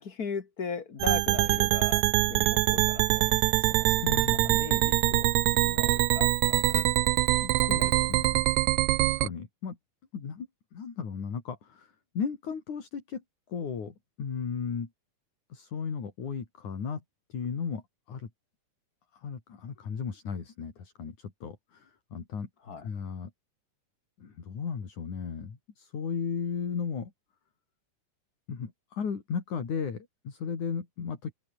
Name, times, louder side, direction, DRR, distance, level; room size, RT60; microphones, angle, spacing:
voice 1, 0.0-4.2 4.4-7.2 7.6-8.2 22.6-22.9, left 5 dB, 35° left, 1.9 m, -39 dB
sound 1, 1.0-9.3, right 17 dB, 75° right, 1.8 m, -24 dB
voice 2, 4.0-4.6 7.4-8.4 9.0-9.8 10.1-13.2 13.5-14.9 15.5-17.0 17.3-18.3 19.1-22.5 22.8-23.3 24.2-27.1 28.5-31.3, left 6 dB, 70° left, 5.0 m, -35 dB
open air
omnidirectional pair, 3.6 m